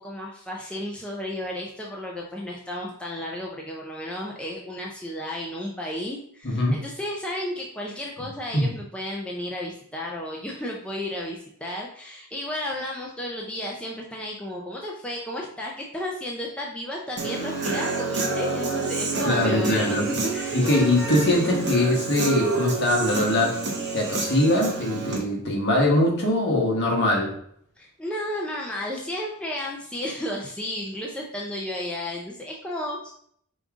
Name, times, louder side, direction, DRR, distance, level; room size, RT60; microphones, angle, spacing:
voice 1, 0.0-20.0 20.3-20.8 27.8-33.1, left 1 dB, 5° left, -3 dB, 0.4 m, -33 dB
voice 2, 6.4-6.8 8.5-8.7 19.2-20.1 20.5-23.5 23.9-27.3, left 1 dB, 50° left, -1 dB, 1.1 m, -22 dB
Human voice / Guitar, 17.2-25.2, right 3 dB, 50° right, 0.9 m, -28 dB
5.2 x 2.4 x 3.6 m, 0.65 s
head